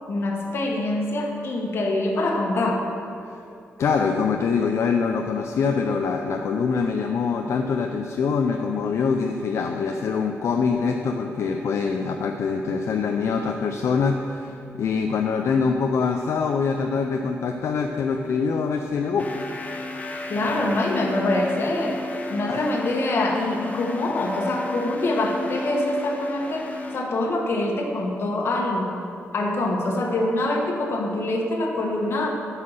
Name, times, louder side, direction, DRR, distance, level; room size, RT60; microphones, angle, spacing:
voice 1, 0.1-2.8 20.3-22.0 22.3-29.0 29.3-32.3, left 2 dB, 55° left, 1 dB, 1.4 m, -25 dB
voice 2, 3.8-19.4 22.5-22.6, left 5 dB, 70° left, 3 dB, 0.5 m, -24 dB
sound 1, 19.2-27.0, left 3 dB, 30° left, 0.8 m, -33 dB
9.7 x 5.7 x 6.5 m, 2.6 s
wide cardioid pair, 125°, 5 cm